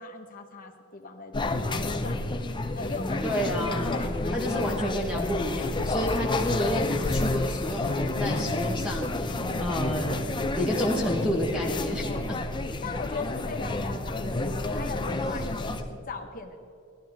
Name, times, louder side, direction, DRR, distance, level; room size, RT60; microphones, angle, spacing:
voice 1, 0.0-2.2 2.5-3.2 3.9-4.9 12.0-12.3 12.8-16.6, left 4 dB, 45° left, 2 dB, 1.2 m, -39 dB
sound 1, 1.3-15.8, left 2 dB, 25° left, 0.6 m, -29 dB
voice 2, 3.2-3.9 4.3-10.2 10.6-12.4, equal, 5° right, -2 dB, 1.2 m, -30 dB
16.0 x 12.0 x 3.5 m, 2.5 s
head